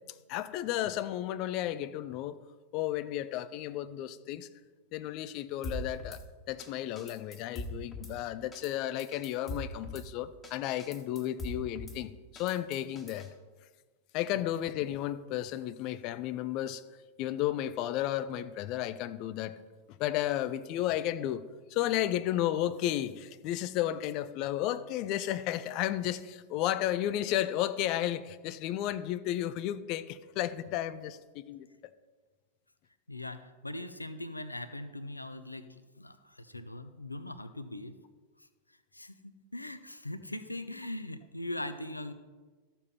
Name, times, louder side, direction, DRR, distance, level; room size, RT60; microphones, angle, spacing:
voice 1, 0.3-2.4 2.7-4.5 4.9-6.2 6.5-13.3 14.1-16.8 17.2-19.5 20.0-21.4 21.7-31.9, left 13 dB, 40° left, 15 dB, 0.5 m, -33 dB
Drum kit / Snare drum, 5.6-6.2 6.6-6.7 7.0-8.1 8.5-8.7 9.0-10.1 10.4-10.5 10.8-12.0 12.4-13.3, left 1 dB, 15° left, 1.6 m, -41 dB
voice 2, 33.1-38.0 38.4-38.5 38.9-42.1, left 1 dB, 85° left, 11 dB, 0.6 m, -41 dB
13.5 x 7.2 x 4.3 m, 1.4 s
figure-of-eight pair, 90°, 0 cm